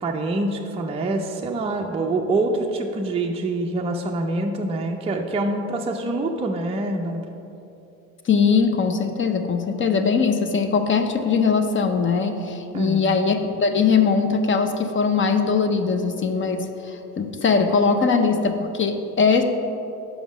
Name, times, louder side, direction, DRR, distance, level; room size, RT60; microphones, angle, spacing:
voice 1, 0.0-7.2 12.7-13.1, right 2 dB, 15° right, 1 dB, 0.5 m, -25 dB
voice 2, 8.3-19.4, left 5 dB, 30° left, 7 dB, 0.6 m, -21 dB
5.2 x 5.1 x 6.2 m, 2.8 s
supercardioid pair, 75°, 41 cm